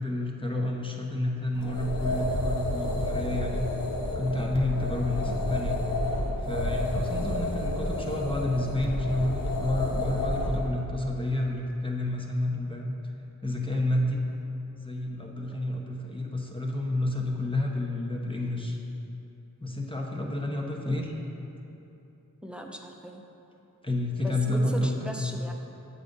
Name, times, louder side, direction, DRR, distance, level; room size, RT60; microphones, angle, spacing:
voice 1, 0.0-3.7 4.1-5.8 6.4-13.0 13.4-14.2 14.7-18.8 19.6-21.1 23.8-25.3, left 1 dB, 15° left, -1 dB, 0.9 m, -30 dB
sound 1, 1.5-10.7, left 1 dB, 65° left, 0.9 m, -30 dB
voice 2, 22.4-23.2 24.2-25.5, equal, 5° right, 2 dB, 0.7 m, -38 dB
7.5 x 3.9 x 5.3 m, 2.9 s
cardioid pair, 45°, 35 cm